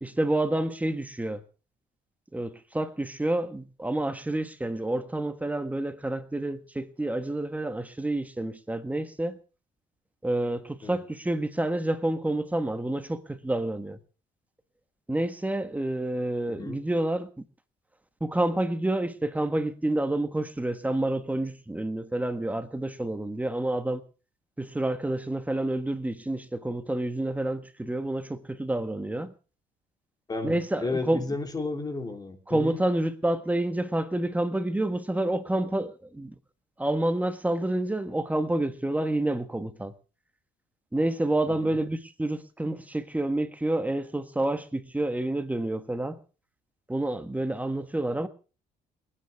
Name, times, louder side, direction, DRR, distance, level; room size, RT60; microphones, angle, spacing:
voice 1, 0.0-1.4 2.3-9.4 10.2-14.0 15.1-17.3 18.2-24.0 24.6-29.3 30.4-31.2 32.5-36.3 36.8-39.9 40.9-46.2 46.9-48.3, right 1 dB, 10° right, 1.4 m, -28 dB
voice 2, 30.3-32.8 41.5-41.8, left 3 dB, 25° left, 3.4 m, -33 dB
29.0 x 9.9 x 3.5 m
cardioid pair, 110°, 17 cm